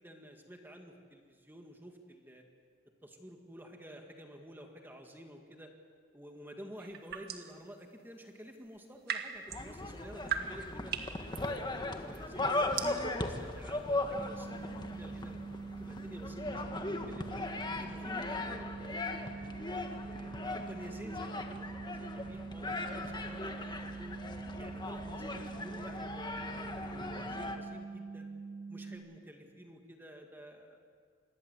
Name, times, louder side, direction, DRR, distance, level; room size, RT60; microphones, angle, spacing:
voice 1, 0.0-2.4 3.0-5.7 6.1-11.0 11.3-15.3 15.8-17.4 17.7-19.6 20.0-24.2 24.6-28.3 28.7-30.8, equal, 10° right, 3 dB, 1.9 m, -51 dB
sound 1, 6.8-7.6 8.7-16.4, right 7 dB, 55° right, 1.9 m, -42 dB
sound 2, 9.5-27.6, left 2 dB, 25° left, 1.6 m, -38 dB
sound 3, 14.1-28.9, right 4 dB, 80° left, 7.3 m, -44 dB
27.5 x 21.0 x 8.1 m, 2.1 s
head